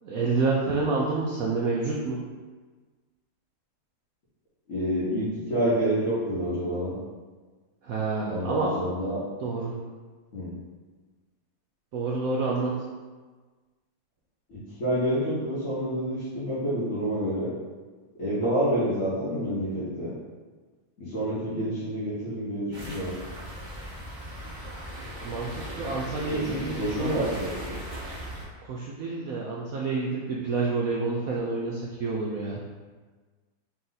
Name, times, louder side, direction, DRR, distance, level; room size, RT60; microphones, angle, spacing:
voice 1, 0.0-2.2 7.8-9.0 9.4-9.8 11.9-12.7 25.2-27.2 28.6-32.6, right 3 dB, 75° right, -3 dB, 0.8 m, -28 dB
voice 2, 4.7-7.0 8.3-9.2 10.3-10.5 14.5-17.5 18.2-20.1 21.0-23.1 26.3-27.8, right 1 dB, 50° left, -11 dB, 1.3 m, -28 dB
sound 1, 22.7-28.4, equal, 40° right, 0.7 m, -38 dB
4.3 x 2.6 x 3.9 m, 1.4 s
omnidirectional pair, 2.0 m